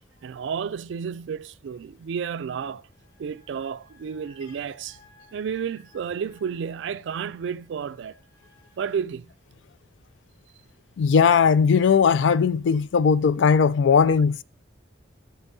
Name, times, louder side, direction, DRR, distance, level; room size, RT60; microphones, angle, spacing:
voice 1, 0.2-2.9 3.2-5.0 5.3-8.2 8.8-9.3, right 7 dB, 60° right, 0.3 m, -31 dB
sound 1, 2.9-9.0, left 2 dB, 25° left, 3.2 m, -59 dB
voice 2, 11.0-14.4, left 6 dB, 65° left, 0.3 m, -18 dB
12.0 x 7.0 x 2.7 m
head